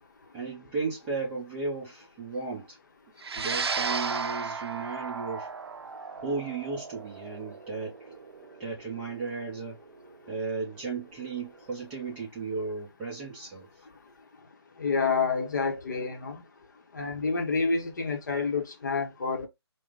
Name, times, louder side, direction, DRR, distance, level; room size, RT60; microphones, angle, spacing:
voice 1, 0.3-2.8 3.4-5.5 6.2-8.2 8.6-9.8 10.3-13.7, right 4 dB, 5° right, 0.6 m, -35 dB
sound 1, 3.2-11.8, right 5 dB, 65° right, 0.5 m, -35 dB
voice 2, 14.8-16.4 16.9-19.5, left 4 dB, 45° left, 0.8 m, -28 dB
4.9 x 2.1 x 3.6 m
hypercardioid pair, 170°, 14 cm